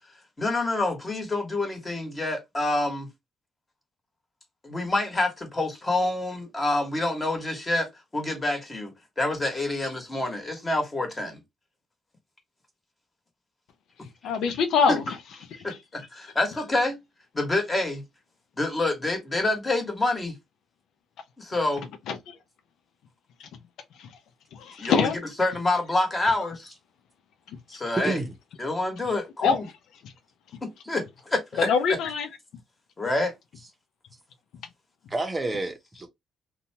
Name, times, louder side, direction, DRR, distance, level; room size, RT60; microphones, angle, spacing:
voice 1, 0.4-3.1 4.6-8.9 9.2-11.4 14.9-15.0 15.6-17.0 17.3-18.0 18.6-20.4 21.4-21.8 24.8-25.1 25.4-26.7 27.7-28.2 28.6-29.6 30.6-31.7 33.0-33.3, left 2 dB, 25° left, 1.4 m, -27 dB
voice 2, 14.2-15.0 21.8-22.3 23.4-23.5 24.0-24.1 24.5-25.2 29.4-29.6 30.0-30.1 31.6-32.3, left 6 dB, 80° left, 0.5 m, -24 dB
voice 3, 28.0-28.3 35.1-36.1, right 2 dB, 20° right, 0.7 m, -29 dB
2.7 x 2.2 x 2.8 m
cardioid pair, 90°, 0 cm